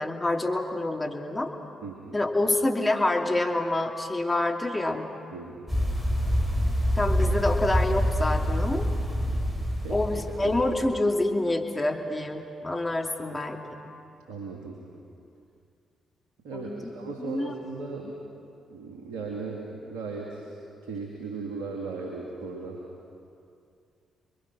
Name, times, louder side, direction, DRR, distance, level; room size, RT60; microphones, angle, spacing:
voice 1, 0.0-1.5 2.1-5.1 6.9-8.9 9.9-13.9 16.5-16.9 17.2-17.5, left 2 dB, 20° left, 2 dB, 2.8 m, -27 dB
voice 2, 1.8-2.2 5.3-5.7 9.8-10.6 13.3-13.4 14.3-14.8 16.4-18.2 18.7-20.5 20.8-22.8, right 4 dB, 75° right, -1 dB, 2.5 m, -37 dB
sound 1, 5.7-11.0, equal, 10° right, 6.1 m, -26 dB
30.0 x 22.0 x 6.1 m, 2.5 s
hypercardioid pair, 40°, 0 cm